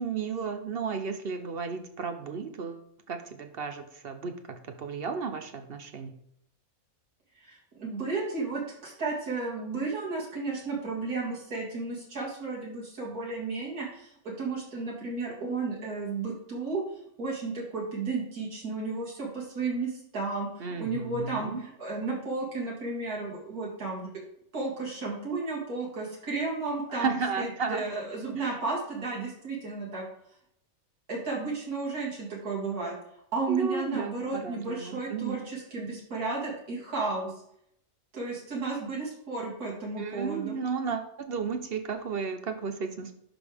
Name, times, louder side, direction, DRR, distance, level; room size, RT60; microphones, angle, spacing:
voice 1, 0.0-6.1 20.6-21.6 26.9-27.9 28.4-28.5 33.5-35.5 40.0-43.1, right 5 dB, 50° right, 7 dB, 0.8 m, -33 dB
voice 2, 7.4-16.8 17.2-24.1 24.5-30.0 31.1-32.9 33.3-37.3 38.1-40.5, right 3 dB, 80° right, -4 dB, 2.7 m, -33 dB
11.0 x 5.3 x 3.5 m, 0.73 s
omnidirectional pair, 1.6 m